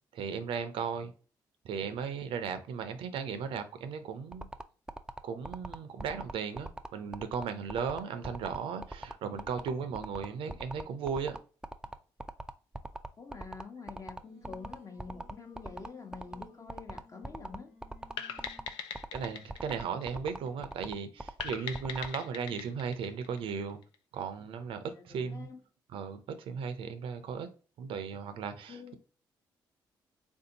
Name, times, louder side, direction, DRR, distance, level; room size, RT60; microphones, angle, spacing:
voice 1, 0.1-1.1 1.6-4.5 5.2-11.4 19.1-23.8 24.1-25.5 25.9-27.5 27.8-28.9, right 6 dB, 75° right, 0.5 m, -36 dB
sound 1, 4.3-22.1, right 2 dB, 10° right, 0.3 m, -41 dB
voice 2, 13.2-17.7 24.9-25.6 28.7-29.0, left 5 dB, 35° left, 1.0 m, -47 dB
Singing, 13.9-18.8, left 4 dB, 65° left, 1.4 m, -58 dB
sound 2, 18.2-20.7 21.4-24.0, left 8 dB, 80° left, 0.4 m, -41 dB
3.5 x 2.6 x 2.8 m
supercardioid pair, 65°, 9 cm